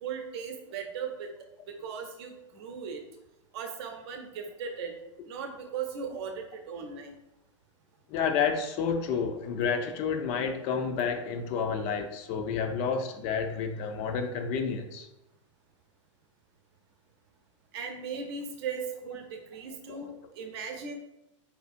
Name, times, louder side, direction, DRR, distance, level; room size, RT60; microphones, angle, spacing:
voice 1, 0.0-1.3 1.7-3.0 3.5-4.9 5.3-7.2 17.7-21.0, right 6 dB, 55° right, 4 dB, 0.7 m, -38 dB
voice 2, 8.1-15.1 19.9-20.1, left 6 dB, 40° left, 6 dB, 0.4 m, -30 dB
4.4 x 2.4 x 2.5 m, 0.87 s
hypercardioid pair, 100°, 16 cm